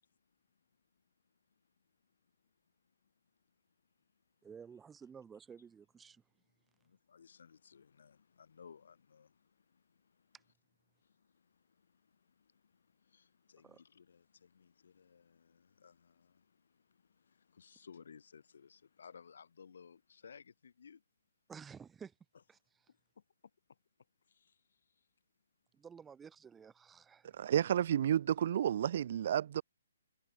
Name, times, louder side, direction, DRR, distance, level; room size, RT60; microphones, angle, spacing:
voice 1, 4.4-6.2 13.6-13.8 21.5-22.1 22.5-22.6 25.7-27.4, right 6 dB, 10° right, 3.1 m, -53 dB
voice 2, 6.9-9.3 13.1-16.3 17.5-21.0 27.5-27.8 28.2-28.6, left 6 dB, 65° left, 6.5 m, -58 dB
voice 3, 27.3-29.6, right 10 dB, 45° right, 0.5 m, -31 dB
hypercardioid pair, 165°, 0 cm